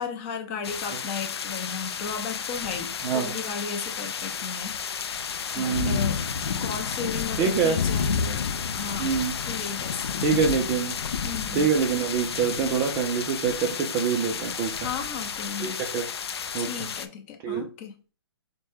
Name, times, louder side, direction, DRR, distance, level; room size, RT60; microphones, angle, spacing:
voice 1, 0.0-4.8 5.6-6.2 6.6-8.5 8.7-9.1 9.4-10.2 11.2-11.7 14.8-15.8 16.6-18.1, left 6 dB, 30° left, 5 dB, 0.6 m, -35 dB
sound 1, 0.6-17.1, left 6 dB, 70° left, 0.4 m, -31 dB
voice 2, 3.0-3.3 5.5-6.0 7.4-7.8 9.0-9.4 10.2-10.9 11.5-14.8 15.6-16.1 16.5-16.7 17.4-17.6, right 6 dB, 20° right, 2 dB, 0.4 m, -25 dB
4.3 x 2.1 x 3.3 m, 0.34 s
hypercardioid pair, 145°, 14 cm